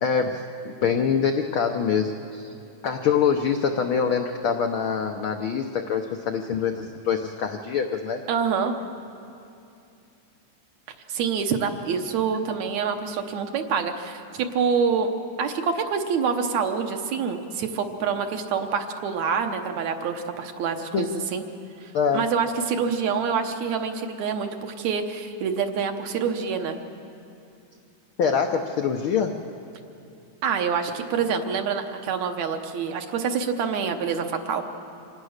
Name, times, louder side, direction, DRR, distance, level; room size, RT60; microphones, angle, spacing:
voice 1, 0.0-2.5 2.8-8.2 20.9-21.1 21.9-22.3 28.2-29.4, left 6 dB, 80° left, 4 dB, 1.1 m, -24 dB
voice 2, 8.3-8.7 11.1-15.1 15.4-21.4 21.8-26.8 30.4-34.6, right 6 dB, 70° right, 5 dB, 2.3 m, -26 dB
25.5 x 18.5 x 6.5 m, 2.7 s
omnidirectional pair, 3.4 m